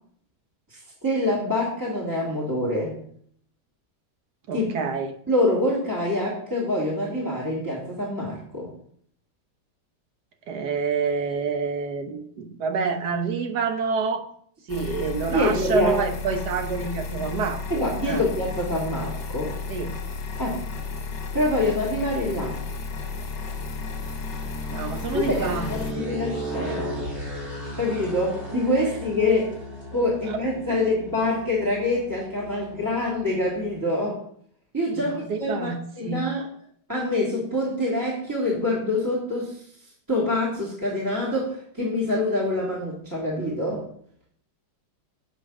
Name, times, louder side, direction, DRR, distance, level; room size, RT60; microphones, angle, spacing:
voice 1, 0.7-3.0 4.5-4.7 5.3-8.7 15.3-15.9 17.7-19.5 20.4-20.6 21.3-22.6 25.1-27.0 27.8-29.5 29.9-34.2 34.7-36.5 36.9-39.6 40.1-43.8, left 1 dB, 10° right, -6 dB, 2.3 m, -25 dB
voice 2, 4.5-5.1 10.5-14.3 14.7-18.2 19.7-19.9 24.7-25.7 25.9-26.3 30.3-30.4 30.7-30.8 34.9-36.3, right 5 dB, 60° right, 6 dB, 1.5 m, -28 dB
sound 1, 14.7-25.9, left 4 dB, 65° left, 2.0 m, -33 dB
sound 2, 19.3-33.8, equal, 35° right, 4.3 m, -38 dB
8.5 x 5.3 x 6.1 m, 0.62 s
omnidirectional pair, 2.2 m